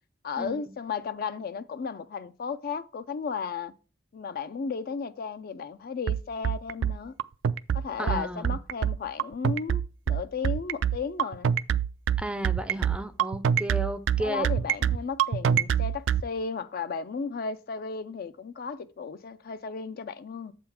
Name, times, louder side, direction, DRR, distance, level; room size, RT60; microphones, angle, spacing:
voice 1, 0.2-3.7 4.1-7.1 7.7-9.8 10.1-11.5 14.2-20.5, left 5 dB, 55° left, 0.4 m, -34 dB
sound 1, 6.1-16.2, right 8 dB, 80° right, 0.3 m, -25 dB
voice 2, 8.0-8.6 12.2-14.5, right 1 dB, 5° right, 0.4 m, -33 dB
7.7 x 3.7 x 5.7 m
head